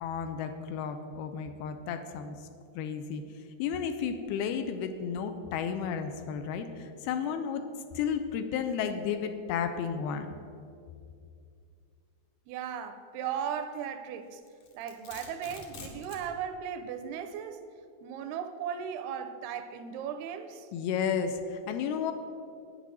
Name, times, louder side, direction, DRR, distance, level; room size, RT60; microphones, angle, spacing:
voice 1, 0.0-2.4 2.8-3.2 3.6-7.7 8.0-10.3 20.7-22.1, left 7 dB, 85° left, 8 dB, 2.5 m, -32 dB
voice 2, 12.5-14.4 14.7-17.6 18.0-20.7, right 8 dB, 80° right, 9 dB, 2.4 m, -37 dB
Domestic sounds home sounds, 14.4-16.3, left 4 dB, 60° left, 2.5 m, -46 dB
9.4 x 8.3 x 7.4 m, 2.4 s
omnidirectional pair, 4.7 m